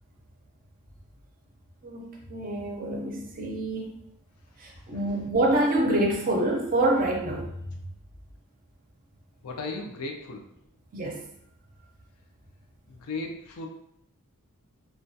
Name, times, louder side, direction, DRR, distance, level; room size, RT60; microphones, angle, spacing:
voice 1, 1.8-4.0 4.6-7.8 10.9-11.3, right 1 dB, 40° right, 0 dB, 0.5 m, -27 dB
voice 2, 9.4-10.5 12.9-13.7, left 3 dB, 70° left, 3 dB, 0.4 m, -36 dB
2.2 x 2.2 x 2.6 m, 0.75 s
head